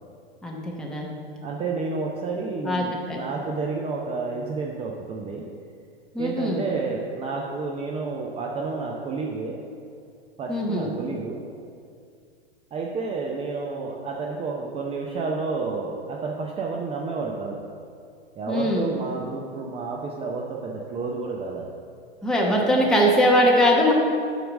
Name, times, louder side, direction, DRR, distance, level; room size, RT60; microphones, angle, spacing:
voice 1, 0.4-1.1 2.6-3.2 6.1-6.6 10.5-10.9 18.5-18.9 22.2-23.9, equal, ahead, -3 dB, 1.0 m, -21 dB
voice 2, 1.4-5.5 6.2-9.6 10.4-11.4 12.7-17.6 18.4-21.7 22.6-22.8, right 4 dB, 20° right, -1 dB, 0.6 m, -30 dB
7.7 x 5.0 x 6.2 m, 2.3 s
figure-of-eight pair, 100°, 31 cm